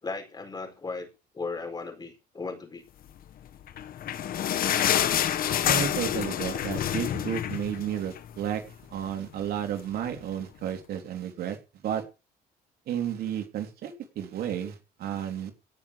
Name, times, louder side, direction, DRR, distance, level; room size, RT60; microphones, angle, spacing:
voice 1, 0.0-1.1 1.3-2.8, left 4 dB, 25° left, 4.7 m, -36 dB
sound 1, 3.6-8.4 8.7-8.8 9.1-9.3 10.0-10.1, left 10 dB, 60° left, 1.6 m, -27 dB
voice 2, 5.7-8.6 8.9-11.6 11.8-12.0 12.9-15.5, right 9 dB, 65° right, 3.5 m, -32 dB
17.5 x 6.8 x 8.1 m
cardioid pair, 110°, 17 cm